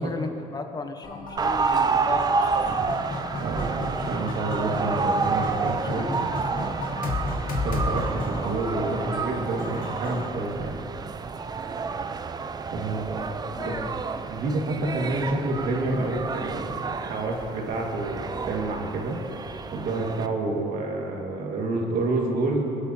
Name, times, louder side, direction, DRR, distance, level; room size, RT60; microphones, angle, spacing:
voice 1, 0.0-2.7 5.8-6.7 13.6-13.9, left 3 dB, 25° left, 6 dB, 0.8 m, -35 dB
sound 1, 1.0-10.3, left 2 dB, 65° left, 1.8 m, -33 dB
sound 2, 1.4-20.3, right 4 dB, 25° right, 0.4 m, -29 dB
voice 2, 3.4-6.1 7.6-10.9 12.7-13.3 13.6-13.8 14.3-19.2 19.7-22.7, right 2 dB, 70° right, 0 dB, 1.8 m, -29 dB
23.0 x 8.0 x 2.8 m, 2.9 s
cardioid pair, 100°, 15 cm